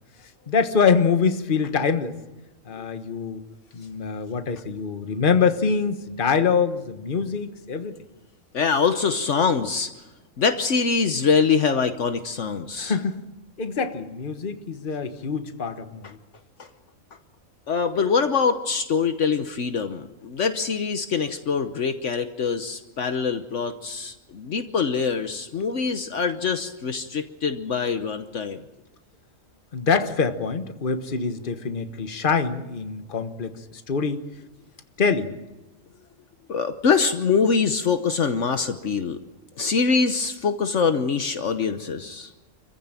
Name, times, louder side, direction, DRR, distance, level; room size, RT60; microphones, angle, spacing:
voice 1, 0.5-2.1 2.7-3.4 3.7-7.9 12.8-13.2 13.6-16.2 29.7-34.2 35.0-35.3, left 5 dB, 40° left, 9 dB, 1.4 m, -24 dB
voice 2, 8.5-9.9 10.4-13.0 16.6-16.7 17.7-28.6 36.5-39.2 39.6-42.3, left 5 dB, 65° left, 8 dB, 1.3 m, -24 dB
26.5 x 15.0 x 9.0 m, 1.0 s
omnidirectional pair, 1.4 m